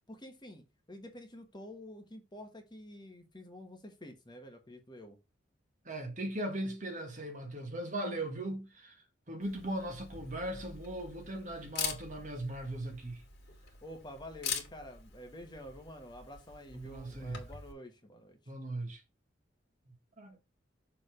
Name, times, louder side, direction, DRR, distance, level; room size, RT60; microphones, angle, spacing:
voice 1, 0.1-0.6 0.9-5.2 13.8-18.5, equal, 25° left, 1.4 m, -49 dB
voice 2, 5.8-8.9 9.3-13.2 16.7-17.4 18.5-19.0 20.2-20.4, right 1 dB, 40° right, 1.8 m, -38 dB
Camera, 9.4-17.7, left 7 dB, 60° left, 2.2 m, -44 dB
6.8 x 3.8 x 4.9 m
head